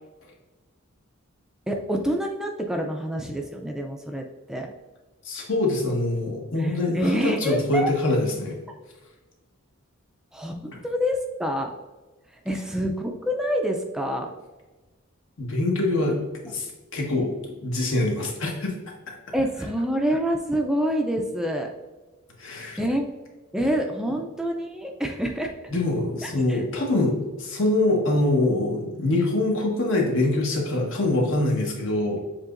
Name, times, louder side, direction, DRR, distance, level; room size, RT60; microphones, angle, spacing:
voice 1, 1.7-4.7 6.6-7.9 8.7-8.8 10.3-11.7 12.5-14.3 19.3-21.7 22.8-23.1 23.5-25.5 26.2-26.6, equal, 5° right, 2 dB, 0.3 m, -27 dB
voice 2, 5.2-8.5 15.4-16.2 16.4-18.7 22.4-22.8 25.7-32.2, left 2 dB, 65° left, 0 dB, 1.2 m, -24 dB
7.2 x 2.9 x 2.5 m, 1.2 s
head